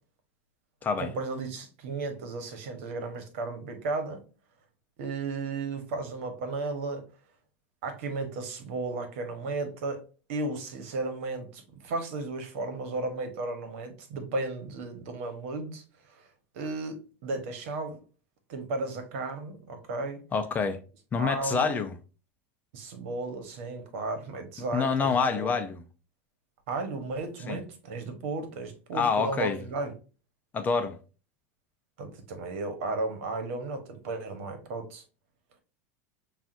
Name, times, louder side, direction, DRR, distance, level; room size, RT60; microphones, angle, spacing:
voice 1, 1.0-4.2 5.0-7.1 7.8-10.0 10.3-15.8 16.1-16.3 16.5-18.0 18.5-20.2 21.2-21.8 22.7-25.5 26.7-29.9 32.0-35.0, right 3 dB, 70° right, 1.1 m, -34 dB
voice 2, 20.3-20.8 21.1-22.0 24.7-25.8 27.5-27.6 28.9-29.6 30.5-31.0, left 5 dB, 25° left, 0.5 m, -27 dB
7.0 x 2.4 x 2.5 m
supercardioid pair, 120°, 7 cm